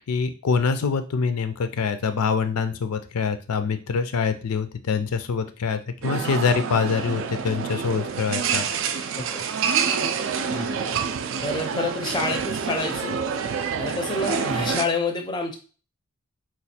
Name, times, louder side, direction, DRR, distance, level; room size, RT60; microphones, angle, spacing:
voice 1, 0.1-8.7, left 5 dB, 85° left, 9 dB, 0.5 m, -25 dB
sound 1, 6.0-14.8, right 6 dB, 55° right, 0.3 m, -27 dB
voice 2, 10.5-10.9 11.4-13.2 13.8-15.6, left 3 dB, 20° left, 4 dB, 0.4 m, -28 dB
3.1 x 2.3 x 4.2 m, 0.36 s
head